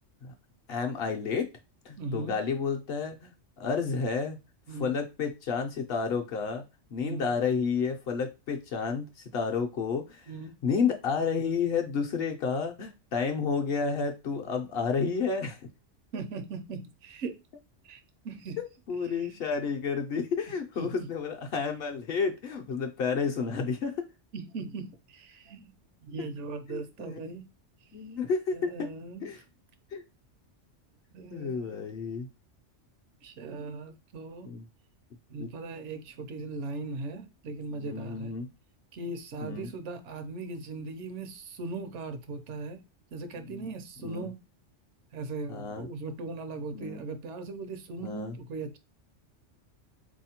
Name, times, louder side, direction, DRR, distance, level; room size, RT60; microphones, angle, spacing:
voice 1, 0.7-1.5 1.9-4.4 4.8-6.6 6.9-9.1 9.3-10.3 10.6-15.6 18.6-24.1 26.2-26.3 26.7-27.2 27.9-28.9 29.2-29.4 29.9-30.0 31.3-32.3 34.4-34.6 35.4-35.5 37.7-38.5 39.4-39.7 43.5-43.6 44.0-44.3 45.5-45.9 46.7-47.0 48.0-48.3, left 5 dB, 60° left, 4 dB, 0.7 m, -31 dB
voice 2, 2.0-2.4 4.7-4.9 7.0-7.3 10.3-10.6 16.1-17.3 17.8-18.6 19.1-19.3 20.8-21.1 24.3-25.7 26.0-27.5 28.5-29.3 31.1-32.1 33.2-34.5 35.3-38.4 38.9-42.8 43.1-44.4 45.1-48.8, right 3 dB, 75° right, 8 dB, 0.9 m, -39 dB
3.9 x 2.7 x 2.8 m, 0.26 s
omnidirectional pair, 1.2 m